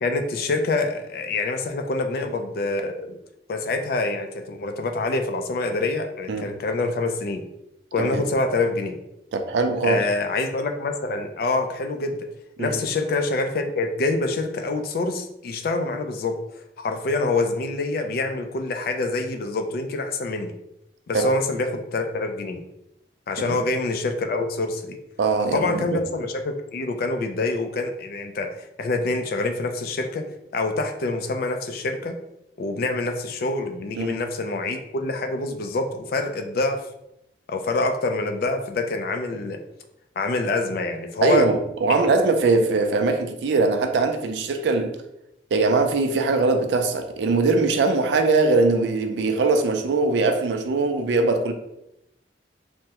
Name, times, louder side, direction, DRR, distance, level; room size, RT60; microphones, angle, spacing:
voice 1, 0.0-3.2 3.5-7.4 7.9-9.0 9.8-12.2 12.6-20.5 21.1-22.6 23.3-25.0 25.5-30.2 30.5-32.1 32.6-36.8 37.5-39.6 40.2-41.5 41.9-42.0, left 2 dB, 55° left, 0.3 m, -26 dB
voice 2, 9.3-10.0 12.6-12.8 21.1-21.3 23.4-23.6 25.2-26.0 34.0-34.2 41.2-45.0 45.5-51.5, right 3 dB, 75° right, 0.4 m, -21 dB
3.4 x 2.0 x 2.8 m
head